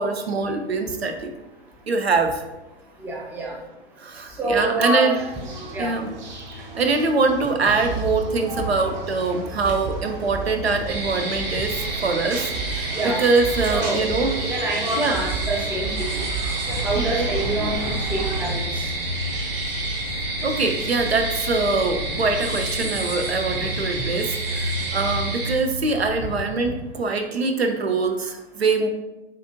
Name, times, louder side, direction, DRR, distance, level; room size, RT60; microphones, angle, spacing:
voice 1, 0.0-1.3 1.9-2.4 4.0-5.2 5.8-6.1 6.7-12.9 13.2-14.3 15.0-15.2 17.0-17.3 20.4-28.9, right 3 dB, 85° right, 5 dB, 0.8 m, -23 dB
voice 2, 3.0-3.6 4.4-5.1 5.7-5.9 12.9-13.2 13.7-14.0 14.4-16.2 16.7-18.9 22.1-22.2 23.9-24.1 26.3-26.4, right 1 dB, 5° right, -1 dB, 0.5 m, -27 dB
sound 1, 5.2-18.4, right 3 dB, 45° right, 1.0 m, -32 dB
sound 2, 10.9-25.5, right 2 dB, 70° right, 1.2 m, -30 dB
sound 3, 16.6-26.4, left 1 dB, 70° left, 0.8 m, -33 dB
7.4 x 2.6 x 2.7 m, 1.0 s
figure-of-eight pair, 115°, 30 cm